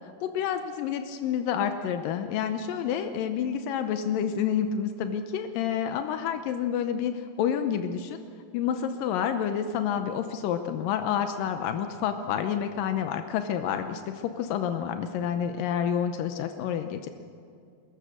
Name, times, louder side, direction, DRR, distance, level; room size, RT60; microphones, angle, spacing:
voice 1, 0.2-8.2 8.5-17.1, left 8 dB, 80° left, 7 dB, 2.0 m, -29 dB
22.5 x 20.0 x 6.5 m, 2.4 s
omnidirectional pair, 5.0 m